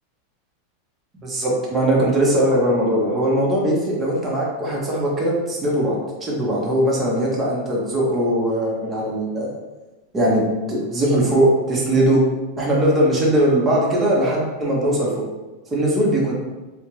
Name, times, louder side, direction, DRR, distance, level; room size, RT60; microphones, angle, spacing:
voice 1, 1.2-9.5 10.1-12.2 12.6-15.3 15.7-16.3, right 1 dB, 20° right, -4 dB, 0.7 m, -20 dB
2.4 x 2.1 x 3.0 m, 1.2 s
supercardioid pair, 145°, 0 cm